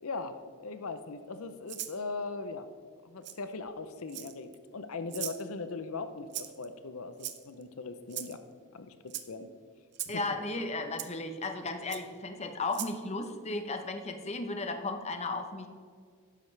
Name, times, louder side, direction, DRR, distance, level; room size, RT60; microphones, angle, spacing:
voice 1, 0.0-2.7 3.0-8.4 8.7-9.5 10.1-10.2, left 3 dB, 75° left, 9 dB, 0.6 m, -39 dB
Rattle (instrument), 1.7-2.0 3.2-3.4 4.1-4.5 5.1-5.4 6.3-6.7 7.2-7.6 8.1-8.4 9.1-9.3 9.9-10.2 11.0-11.1 11.9-12.0 12.7-13.0, right 13 dB, 50° right, 0.7 m, -39 dB
voice 2, 10.1-15.7, left 2 dB, 30° left, 6 dB, 0.8 m, -35 dB
12.5 x 9.9 x 3.3 m, 2.1 s
head